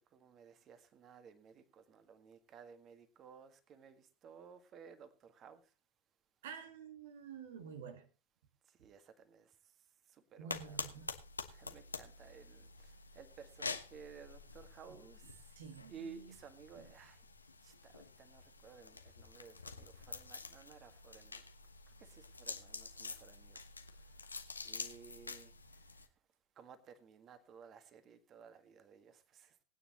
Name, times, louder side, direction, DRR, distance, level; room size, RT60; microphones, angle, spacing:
voice 1, 0.1-5.7 8.7-9.6 10.1-10.9 11.5-15.5 15.9-17.2 17.6-21.5 22.0-23.6 23.9-26.1 26.5-29.6, right 6 dB, 35° right, 1.8 m, -57 dB
voice 2, 6.4-8.1 10.4-11.2 14.9-15.0 15.5-16.3 16.8-16.9, right 7 dB, 70° right, 1.6 m, -50 dB
sound 1, 10.5-26.1, left 4 dB, 90° left, 1.2 m, -48 dB
20.0 x 9.5 x 3.0 m
figure-of-eight pair, 85°, 0 cm